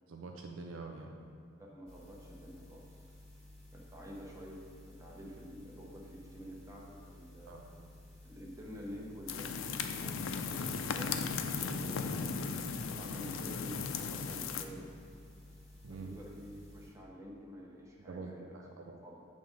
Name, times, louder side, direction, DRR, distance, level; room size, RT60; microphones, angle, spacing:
voice 1, 0.1-1.1 7.5-7.9 15.8-16.1 18.0-19.0, right 3 dB, 75° right, 2 dB, 0.5 m, -46 dB
voice 2, 1.6-2.8 3.7-7.6 8.2-12.3 12.9-14.9 15.9-18.6 19.0-19.2, equal, 15° right, -3 dB, 0.9 m, -49 dB
sound 1, 1.9-16.9, left 1 dB, 5° left, 1.2 m, -55 dB
sound 2, 9.3-14.6, left 5 dB, 80° left, 0.4 m, -36 dB
7.8 x 3.6 x 5.1 m, 2.5 s
head